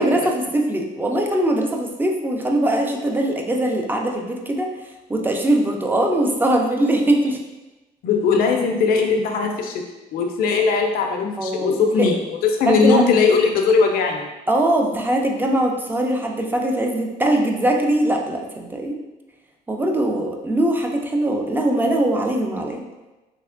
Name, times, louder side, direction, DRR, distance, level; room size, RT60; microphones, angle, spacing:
voice 1, 0.0-4.7 5.1-7.4 11.4-12.1 12.7-13.0 14.5-19.0 19.7-22.8, right 1 dB, 10° right, 2 dB, 0.4 m, -21 dB
voice 2, 8.0-9.7 10.1-12.2 12.4-14.3, left 5 dB, 60° left, 2 dB, 0.4 m, -19 dB
3.2 x 2.8 x 2.4 m, 1.1 s
cardioid pair, 110°, 17 cm